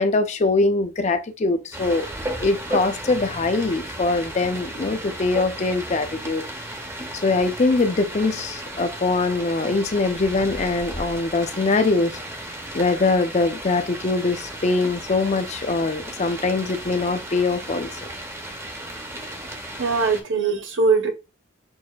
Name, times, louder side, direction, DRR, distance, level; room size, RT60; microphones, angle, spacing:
voice 1, 0.0-2.1 2.4-6.4 7.1-12.2 12.7-17.9, left 3 dB, 35° left, 0.4 m, -22 dB
sound 1, 1.7-20.2, right 1 dB, 15° right, 0.6 m, -34 dB
voice 2, 19.8-21.1, right 4 dB, 65° right, 0.8 m, -21 dB
6.1 x 2.5 x 2.3 m
head